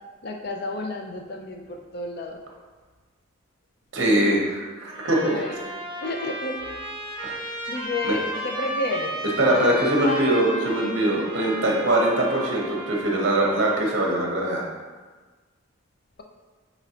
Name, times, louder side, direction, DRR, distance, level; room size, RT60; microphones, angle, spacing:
voice 1, 0.2-2.4 5.2-5.7 6.0-6.6 7.1-7.3 7.7-9.2 9.6-10.3, left 2 dB, 50° left, 3 dB, 0.4 m, -31 dB
voice 2, 3.9-5.4 7.2-7.4 8.1-8.2 9.4-14.6, right 1 dB, 55° right, -2 dB, 0.8 m, -22 dB
Trumpet, 4.8-14.0, right 1 dB, 25° right, 0.8 m, -34 dB
5.1 x 3.0 x 2.8 m, 1.4 s
head